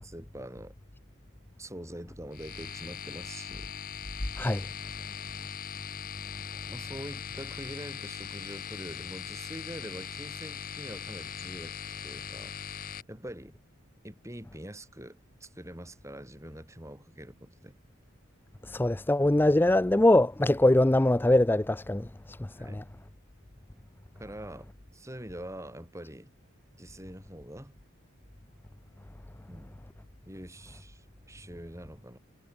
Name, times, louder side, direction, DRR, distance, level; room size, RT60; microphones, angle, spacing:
voice 1, 0.0-0.8 1.6-3.7 6.7-13.6 14.0-17.8 22.5-22.8 24.2-26.3 26.8-27.8 29.5-29.8 30.3-32.2, right 1 dB, 15° right, 6.9 m, -44 dB
sound 1, 2.3-13.0, left 7 dB, 45° left, 1.3 m, -40 dB
voice 2, 18.7-22.4 22.7-22.8, left 1 dB, 10° left, 0.4 m, -23 dB
head